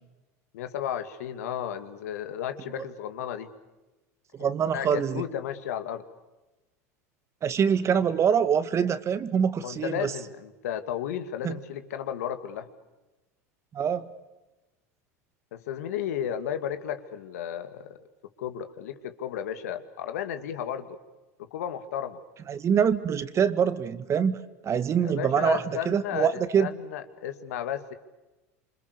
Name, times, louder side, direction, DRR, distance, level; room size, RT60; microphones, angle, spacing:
voice 1, 0.5-3.5 4.4-6.0 9.6-12.7 15.5-18.0 18.4-21.0 21.5-22.2 25.0-27.9, left 9 dB, 75° left, 9 dB, 2.3 m, -33 dB
voice 2, 4.4-5.2 7.4-10.1 11.4-11.6 13.7-14.1 22.5-24.4 24.6-26.7, right 7 dB, 35° right, 13 dB, 1.8 m, -24 dB
27.5 x 26.0 x 6.9 m, 1.1 s
hypercardioid pair, 90°, 8 cm